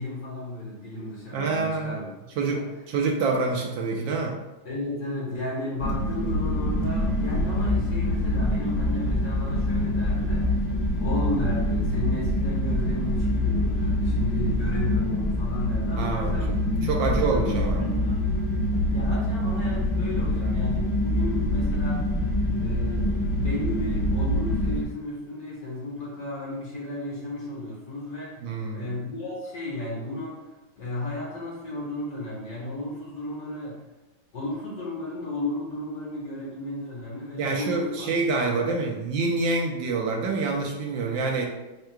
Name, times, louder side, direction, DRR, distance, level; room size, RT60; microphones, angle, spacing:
voice 1, 0.0-2.1 2.5-2.6 4.6-10.5 11.0-16.6 17.0-18.2 18.9-22.0 22.6-28.4 28.7-30.4 30.8-33.8 34.3-38.8, left 2 dB, 55° left, -4 dB, 1.2 m, -34 dB
voice 2, 1.3-2.0 2.4-4.4 16.0-16.6 16.8-17.8 28.4-28.9 37.4-41.5, right 4 dB, 75° right, 1 dB, 1.2 m, -27 dB
sound 1, 5.8-24.8, left 1 dB, 85° left, 0.4 m, -25 dB
3.7 x 2.3 x 4.4 m, 1.0 s
omnidirectional pair, 2.2 m